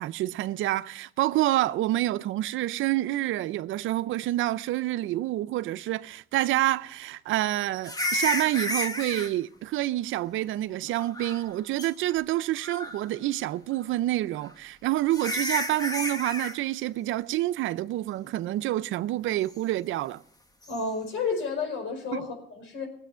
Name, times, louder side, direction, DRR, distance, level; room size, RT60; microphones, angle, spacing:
voice 1, 0.0-20.2 22.1-22.3, right 15 dB, 85° right, 0.6 m, -28 dB
sound 1, 7.8-9.3 11.0-11.5 11.8-11.9 12.6-13.1 14.4-14.5 15.1-16.6 20.6-20.8, left 1 dB, 20° left, 1.3 m, -31 dB
voice 2, 20.7-22.9, left 4 dB, 75° left, 4.9 m, -31 dB
20.0 x 8.3 x 5.5 m
cardioid pair, 90°, 20 cm